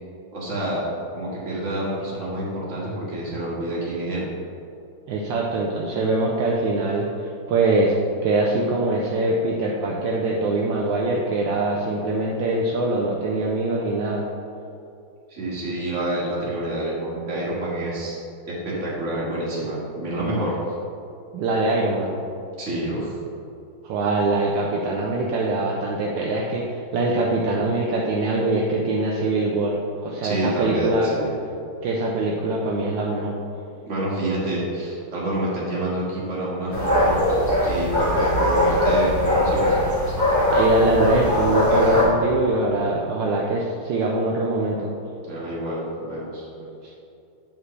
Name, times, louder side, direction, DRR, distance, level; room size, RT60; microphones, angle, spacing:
voice 1, 0.3-0.8 1.1-4.3 15.3-18.2 18.5-20.6 22.6-23.1 30.2-31.3 33.9-37.2 37.6-39.7 45.2-46.5, right 1 dB, 35° right, -7 dB, 1.9 m, -28 dB
voice 2, 5.1-7.9 8.2-14.2 21.3-22.1 23.8-31.1 31.8-33.4 40.5-44.9, right 2 dB, 75° right, -2 dB, 1.3 m, -23 dB
sound 1, 36.7-42.0, left 1 dB, 10° left, 1.3 m, -20 dB
8.8 x 5.1 x 3.2 m, 2.6 s
omnidirectional pair, 2.2 m